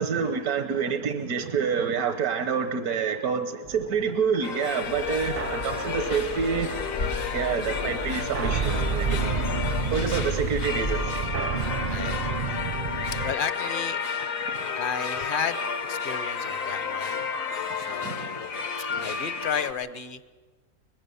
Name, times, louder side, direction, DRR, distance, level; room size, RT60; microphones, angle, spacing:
voice 1, 0.0-6.7 7.3-9.3 9.9-11.3 14.5-14.7 17.9-18.4 18.9-19.1, right 6 dB, 80° right, 9 dB, 1.5 m, -28 dB
sound 1, 3.7-13.3, right 5 dB, 45° right, 0.7 m, -31 dB
sound 2, 4.4-19.7, left 6 dB, 65° left, 1.7 m, -32 dB
sound 3, 4.8-11.1, left 1 dB, 85° left, 3.3 m, -35 dB
voice 2, 11.9-12.4 13.2-14.0 14.8-15.6 15.9-17.2 17.8-18.5 19.0-20.2, left 7 dB, 40° left, 13 dB, 0.9 m, -32 dB
22.0 x 20.5 x 6.9 m, 1.4 s
omnidirectional pair, 1.5 m